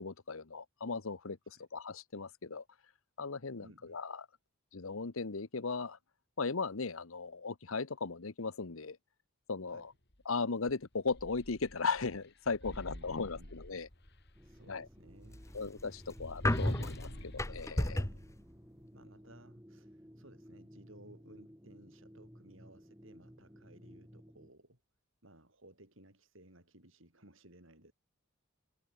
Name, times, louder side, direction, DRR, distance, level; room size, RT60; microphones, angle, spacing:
voice 1, 0.0-2.6 3.2-4.3 4.7-6.0 6.4-9.0 9.5-9.9 10.2-13.9 14.7-14.9 15.5-18.1, left 4 dB, 70° left, 1.0 m, -37 dB
voice 2, 3.6-4.0 9.7-9.9 12.6-13.5 14.4-15.5 17.6-18.3 18.9-24.8 25.2-27.9, right 1 dB, 65° right, 7.5 m, -59 dB
sound 1, 10.1-10.2 10.6-14.3 15.2-18.9, left 1 dB, 50° left, 3.9 m, -48 dB
sound 2, 14.3-24.5, equal, 10° right, 5.6 m, -57 dB
sound 3, 15.1-18.3, left 1 dB, 15° left, 1.4 m, -33 dB
head